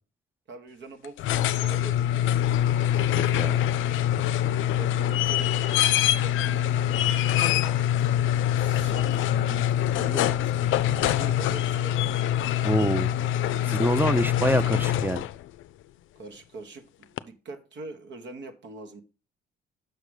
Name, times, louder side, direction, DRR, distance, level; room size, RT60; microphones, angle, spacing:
voice 1, 0.5-2.3 4.3-5.7 6.1-7.0 7.6-12.0 13.4-13.7 16.1-19.0, right 2 dB, 65° right, 1.3 m, -43 dB
sound 1, 1.0-15.4 17.2-17.3, left 11 dB, 80° left, 0.4 m, -24 dB
voice 2, 3.1-3.6 12.6-13.1 13.7-15.3, right 1 dB, 10° right, 0.5 m, -26 dB
6.6 x 5.1 x 4.8 m
cardioid pair, 90°, 20 cm